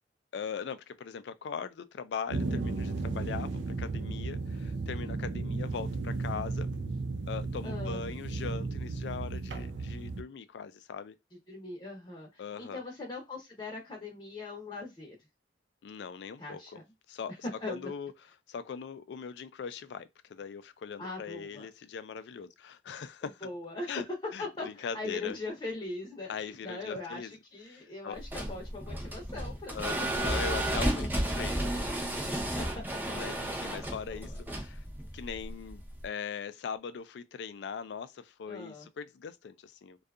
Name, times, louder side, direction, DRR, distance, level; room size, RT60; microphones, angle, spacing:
voice 1, 0.3-6.7 7.3-11.2 12.4-12.8 15.8-16.8 17.1-17.3 17.7-18.1 18.5-23.4 23.9-24.0 24.3-25.4 26.3-27.3 27.7-28.2 29.7-31.8 33.1-34.8 35.1-40.0, left 6 dB, 70° left, 0.3 m, -40 dB
sound 1, 2.3-10.2, right 3 dB, 80° right, 0.4 m, -34 dB
voice 2, 7.6-8.0 11.5-15.2 16.4-16.8 17.6-17.9 21.0-21.7 23.4-29.8 32.3-32.7 33.1-33.2 33.5-33.9 34.1-34.4 38.5-38.9, left 3 dB, 30° left, 0.7 m, -40 dB
sound 2, 28.2-36.0, right 1 dB, 10° right, 0.5 m, -33 dB
2.7 x 2.3 x 2.3 m
head